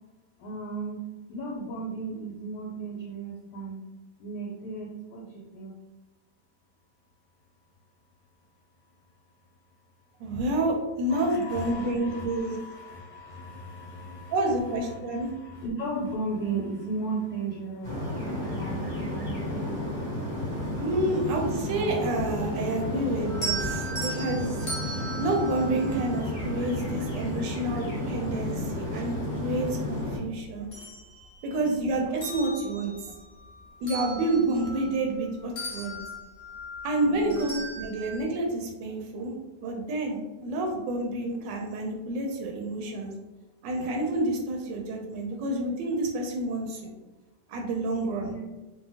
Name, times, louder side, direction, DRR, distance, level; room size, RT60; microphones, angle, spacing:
voice 1, 0.4-3.8 4.2-5.7 11.1-14.5 14.8-18.1 18.6-19.8 20.5-21.2 31.6-31.8 37.0-37.5 48.2-48.4, right 3 dB, 75° left, -3 dB, 1.2 m, -36 dB
voice 2, 10.2-12.6 14.3-15.3 20.8-30.7 31.4-33.1 33.8-36.0 36.8-43.1 43.6-46.9 47.5-48.3, right 2 dB, 85° right, 1 dB, 1.2 m, -29 dB
sound 1, 17.8-30.2, left 1 dB, 5° left, 1.1 m, -32 dB
sound 2, 23.3-26.6 28.3-28.4 28.9-30.1 30.5-31.7 32.1-35.3 35.6-38.2, right 2 dB, 45° left, 0.9 m, -38 dB
2.7 x 2.6 x 2.7 m, 1.1 s
omnidirectional pair, 1.9 m